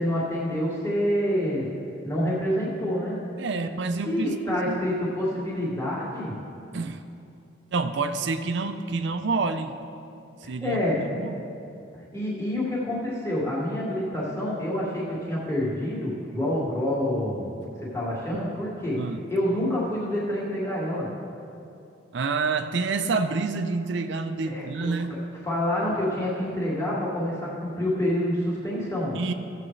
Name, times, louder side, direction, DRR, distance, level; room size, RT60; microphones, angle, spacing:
voice 1, 0.0-1.7 2.0-3.2 4.1-6.4 10.4-11.1 12.1-17.5 17.9-19.0 19.3-21.1 24.5-24.9 25.4-29.2, left 1 dB, 15° left, -8 dB, 1.9 m, -27 dB
voice 2, 3.4-4.9 6.7-7.0 7.7-9.7 10.4-11.8 18.3-18.5 19.0-19.2 22.1-25.1 29.1-29.3, right 4 dB, 60° right, 9 dB, 0.5 m, -28 dB
15.5 x 7.5 x 3.2 m, 2.6 s
head